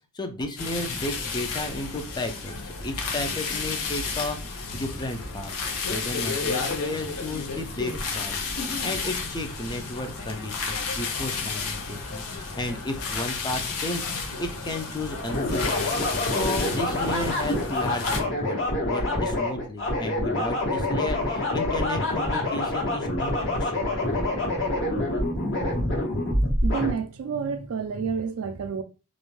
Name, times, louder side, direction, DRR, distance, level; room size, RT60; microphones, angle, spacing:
voice 1, 0.1-5.5 5.9-15.9 16.3-24.0, left 2 dB, 20° left, 0.4 m, -33 dB
sound 1, 0.6-18.2, left 4 dB, 75° left, 0.7 m, -32 dB
sound 2, 15.3-26.9, left 1 dB, 60° left, 1.1 m, -26 dB
voice 2, 26.6-28.8, right 6 dB, 70° right, 0.4 m, -29 dB
2.5 x 2.1 x 3.1 m
head